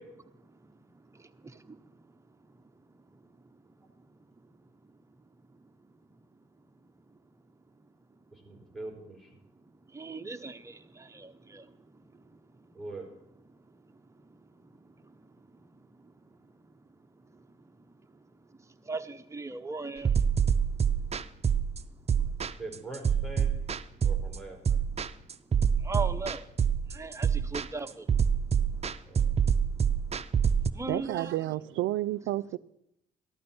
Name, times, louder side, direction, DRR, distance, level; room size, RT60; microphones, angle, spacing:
voice 1, 0.2-8.8 9.3-22.6 23.6-31.3, right 3 dB, 15° right, 0.9 m, -45 dB
voice 2, 8.3-9.3 12.7-13.1 22.6-23.5 24.0-24.8 29.1-29.3, right 2 dB, 5° left, 4.1 m, -42 dB
sound 1, 20.0-30.7, right 7 dB, 30° right, 0.6 m, -26 dB
voice 3, 30.9-32.6, right 15 dB, 80° right, 0.4 m, -30 dB
14.5 x 12.0 x 4.3 m
cardioid pair, 90°, 20 cm